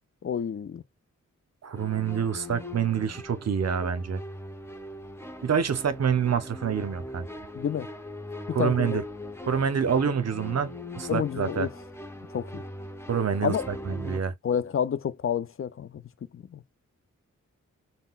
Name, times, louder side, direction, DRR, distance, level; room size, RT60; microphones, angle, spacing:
voice 1, 0.2-0.8 7.5-7.9 8.5-9.0 11.1-11.7 12.3-12.6 13.4-13.7 14.4-16.0 16.3-16.6, left 8 dB, 45° left, 0.5 m, -29 dB
voice 2, 1.6-4.2 5.4-7.3 8.5-9.0 9.5-11.7 13.1-14.3, right 7 dB, 55° right, 0.7 m, -27 dB
sound 1, 1.7-14.2, left 1 dB, 10° left, 0.7 m, -41 dB
3.6 x 2.1 x 2.3 m
cardioid pair, 40°, 31 cm